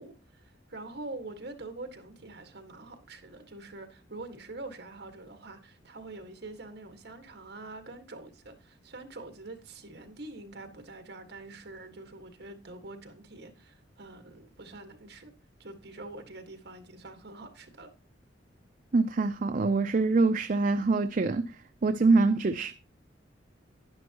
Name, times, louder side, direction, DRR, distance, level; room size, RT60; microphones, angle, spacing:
voice 1, 0.0-15.3 15.6-17.9, right 2 dB, 60° right, 1.6 m, -45 dB
voice 2, 18.9-22.7, right 3 dB, 45° right, 0.5 m, -25 dB
10.5 x 10.5 x 2.9 m
head